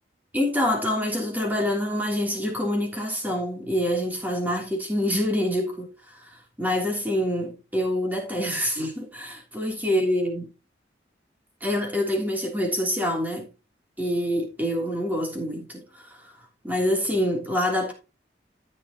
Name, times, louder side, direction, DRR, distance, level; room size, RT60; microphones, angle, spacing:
voice 1, 0.3-6.2 6.6-10.5 11.6-13.5 14.0-16.2 16.6-17.9, equal, 10° right, 3.2 m, -26 dB
13.5 x 6.3 x 3.0 m
head